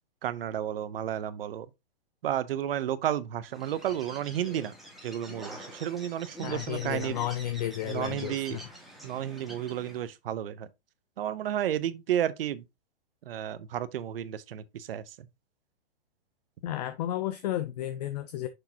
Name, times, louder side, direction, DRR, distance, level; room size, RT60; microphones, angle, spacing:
voice 1, 0.2-1.7 2.2-4.7 5.0-7.2 7.9-8.6 9.0-10.7 11.2-12.6 13.3-15.3, right 10 dB, 60° right, 0.8 m, -32 dB
Bird, 3.5-10.1, equal, ahead, 1.8 m, -46 dB
voice 2, 6.4-8.7 16.6-18.5, left 12 dB, 40° left, 0.6 m, -33 dB
6.7 x 6.2 x 2.8 m
hypercardioid pair, 145°, 33 cm